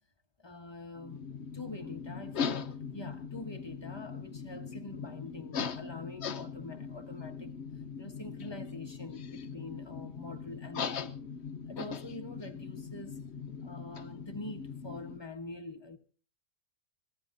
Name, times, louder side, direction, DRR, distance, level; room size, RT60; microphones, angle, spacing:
voice 1, 0.4-1.2 1.5-7.6 8.0-11.2 11.7-13.2 13.6-16.0, left 2 dB, 20° left, 1.0 m, -45 dB
sound 1, 1.0-15.2, left 6 dB, 50° left, 0.9 m, -40 dB
25.5 x 17.0 x 2.6 m
omnidirectional pair, 1.8 m